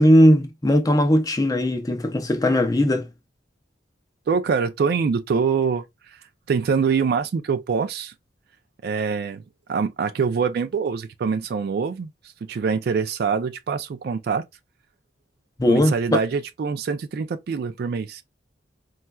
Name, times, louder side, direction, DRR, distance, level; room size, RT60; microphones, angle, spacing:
voice 1, 0.0-3.1 15.6-16.2, equal, 20° left, 0.5 m, -18 dB
voice 2, 4.3-5.8 6.5-8.1 8.8-9.4 9.7-12.1 12.4-14.4 15.7-18.2, right 5 dB, 60° right, 0.3 m, -24 dB
4.2 x 2.3 x 2.2 m
head